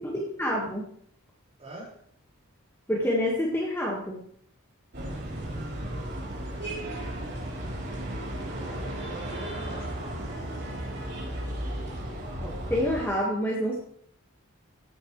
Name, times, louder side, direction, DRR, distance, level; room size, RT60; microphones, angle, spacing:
voice 1, 0.0-0.8 2.9-4.2 12.4-13.8, equal, 10° left, -3 dB, 1.6 m, -27 dB
voice 2, 1.6-2.1 8.4-10.6, right 1 dB, 30° right, -5 dB, 5.0 m, -45 dB
sound 1, 4.9-13.1, right 1 dB, 50° right, 3.5 m, -34 dB
15.0 x 9.7 x 3.2 m, 0.65 s
head